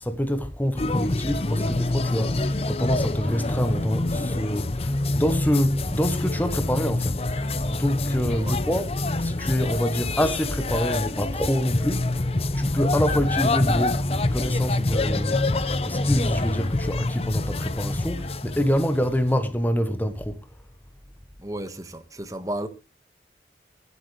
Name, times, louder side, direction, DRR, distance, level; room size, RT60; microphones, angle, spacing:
voice 1, 0.0-8.9 9.2-12.2 12.5-20.5, equal, 10° left, 1.0 m, -26 dB
sound 1, 0.8-19.3, left 2 dB, 35° left, 0.7 m, -26 dB
voice 2, 21.4-22.7, right 1 dB, 20° right, 1.3 m, -33 dB
23.5 x 8.2 x 3.2 m
head